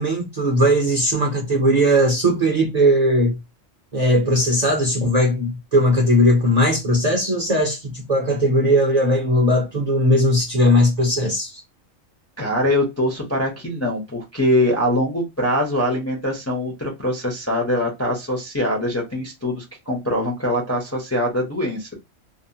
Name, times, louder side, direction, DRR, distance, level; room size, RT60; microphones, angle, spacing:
voice 1, 0.0-3.4 3.9-11.6, equal, 40° right, 0.7 m, -18 dB
voice 2, 12.4-21.9, left 1 dB, 15° left, 0.5 m, -23 dB
2.7 x 2.1 x 2.6 m
omnidirectional pair, 1.3 m